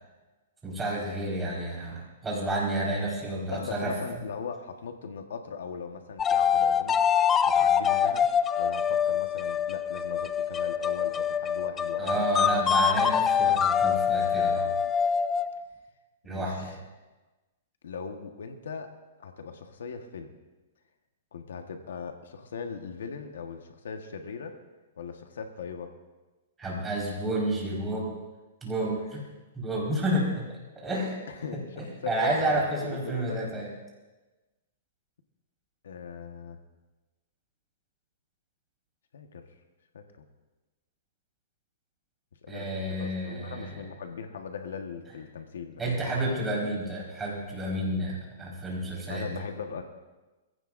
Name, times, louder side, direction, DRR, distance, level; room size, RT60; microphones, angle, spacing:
voice 1, 0.6-3.9 12.0-14.7 16.2-16.7 26.6-28.1 28.6-29.3 29.5-30.5 30.7-31.2 31.5-33.7 42.5-43.8 45.8-49.3, right 1 dB, 10° right, -4 dB, 4.8 m, -30 dB
voice 2, 3.5-7.0 7.4-12.5 13.0-13.1 16.3-16.7 17.8-18.9 19.2-20.3 21.3-24.6 25.0-25.9 31.3-33.5 35.8-36.6 39.1-39.5 39.9-40.2 42.4-46.5 49.1-49.8, left 6 dB, 80° left, 5 dB, 1.4 m, -39 dB
sound 1, 6.2-15.6, left 8 dB, 15° left, 0.4 m, -25 dB
22.5 x 16.0 x 2.6 m, 1.2 s
hypercardioid pair, 150°, 0 cm